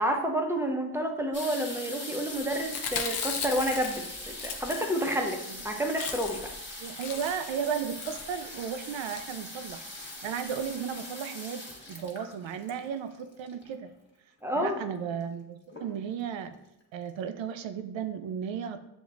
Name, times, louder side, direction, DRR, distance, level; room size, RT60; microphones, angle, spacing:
voice 1, 0.0-6.4 14.4-14.8, equal, 5° right, 2 dB, 0.8 m, -29 dB
sound 1, 1.3-13.9 14.7-14.8 15.0-15.4 15.7-16.3 16.8-16.9 17.1-17.2, left 1 dB, 25° left, 1.4 m, -42 dB
Chewing mastication, 2.6-5.2 5.5-5.6 5.8-6.5 6.9-7.5 8.0-8.3 8.9-9.2 9.9-10.1 10.5-10.6 10.7-10.8, left 6 dB, 60° left, 0.7 m, -36 dB
voice 2, 6.8-13.9 14.6-16.6 16.9-18.9, right 7 dB, 80° right, 9 dB, 0.6 m, -35 dB
7.1 x 2.9 x 2.4 m, 0.88 s
cardioid pair, 50°, 45 cm